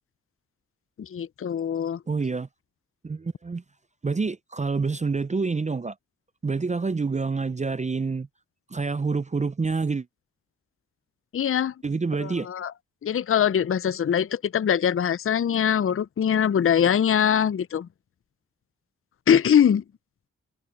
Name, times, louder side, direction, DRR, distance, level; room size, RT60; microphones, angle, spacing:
voice 1, 1.0-2.0 11.3-11.7 12.2-12.7 13.0-17.9 19.3-19.8, left 8 dB, 45° left, 0.5 m, -22 dB
voice 2, 2.1-2.5 3.0-3.6 4.0-5.9 6.4-8.3 8.7-10.1 11.8-12.5, right 4 dB, 25° right, 0.5 m, -27 dB
cardioid pair, 40°, 30 cm